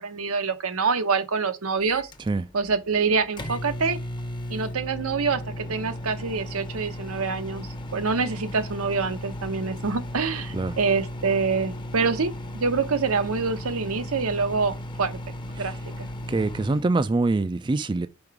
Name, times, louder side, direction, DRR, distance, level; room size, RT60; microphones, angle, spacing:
voice 1, 0.0-2.1 2.5-4.0 4.5-15.2 15.6-16.1, right 4 dB, 85° right, 0.9 m, -26 dB
Microwave oven, 1.8-16.9, equal, 20° left, 0.7 m, -36 dB
voice 2, 16.3-18.1, right 3 dB, 20° right, 0.3 m, -24 dB
5.3 x 4.8 x 4.7 m
head